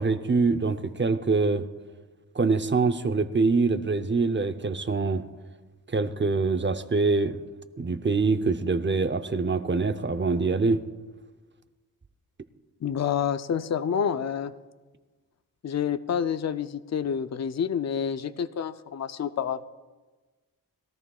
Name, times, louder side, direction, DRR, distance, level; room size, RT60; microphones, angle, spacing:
voice 1, 0.0-1.6 2.3-5.2 5.9-7.4 7.8-10.8, right 4 dB, 30° right, 10 dB, 0.7 m, -24 dB
voice 2, 12.8-14.5 15.6-19.7, left 7 dB, 45° left, 11 dB, 0.5 m, -28 dB
21.0 x 13.5 x 2.4 m, 1.3 s
wide cardioid pair, 85°, 37 cm